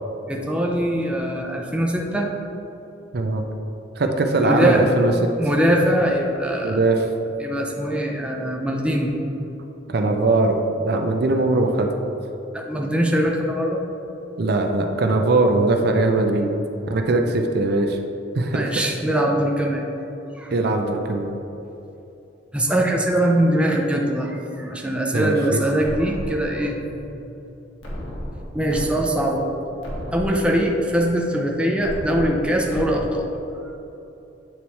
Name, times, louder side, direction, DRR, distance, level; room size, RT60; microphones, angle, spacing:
voice 1, 0.3-2.3 4.4-4.8 5.3-6.8 7.4-9.1 12.5-13.8 18.5-19.9 20.3-20.5 22.5-26.8 28.5-29.5 30.1-33.3 33.6-33.7, right 1 dB, 5° right, -1 dB, 0.5 m, -22 dB
voice 2, 3.1-3.5 4.0-5.1 6.6-7.1 9.9-10.6 10.8-11.9 14.4-16.5 16.9-18.0 18.3-18.7 20.5-21.3 25.1-25.6, right 2 dB, 55° right, 4 dB, 0.5 m, -20 dB
sound 1, 25.8-26.8 27.8-28.9 29.3-29.4 29.8-30.8 31.8-32.9, equal, 85° left, 1.2 m, -33 dB
8.7 x 3.1 x 4.1 m, 2.9 s
head